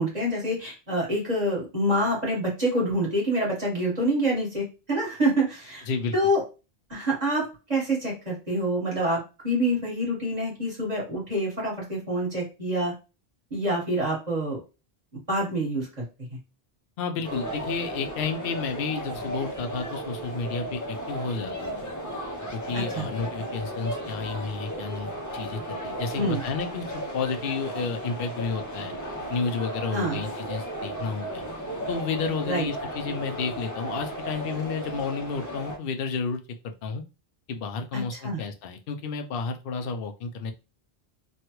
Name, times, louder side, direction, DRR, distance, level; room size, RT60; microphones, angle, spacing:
voice 1, 0.0-5.9 6.1-6.4 6.9-12.9 13.5-14.6 15.3-16.0 16.3-16.4 22.7-23.1 26.1-26.4 29.9-30.2 32.5-32.7 37.9-38.4, right 1 dB, 40° right, -4 dB, 1.6 m, -26 dB
voice 2, 17.0-21.7 22.5-28.9 29.3-31.4 31.9-37.0 37.5-40.5, left 5 dB, 70° left, 6 dB, 0.7 m, -31 dB
sound 1, 17.2-35.8, right 1 dB, 25° left, 0.5 m, -35 dB
3.2 x 2.3 x 2.9 m, 0.30 s
omnidirectional pair, 1.0 m